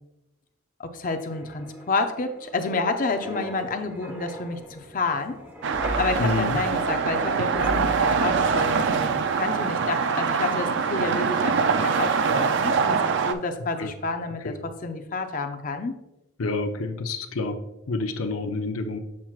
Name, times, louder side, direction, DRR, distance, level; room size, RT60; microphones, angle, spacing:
voice 1, 0.8-5.4 6.0-15.9, left 3 dB, 40° left, 7 dB, 0.5 m, -29 dB
Wind, 1.1-13.5 13.8-14.0, equal, 10° right, 1.0 m, -39 dB
sound 1, 5.6-13.3, right 5 dB, 55° right, 0.4 m, -24 dB
voice 2, 6.2-6.6 13.8-13.9 14.4-14.5 16.4-17.6 17.9-19.0, left 3 dB, 85° left, 7 dB, 0.7 m, -28 dB
7.3 x 5.8 x 2.4 m, 0.92 s
head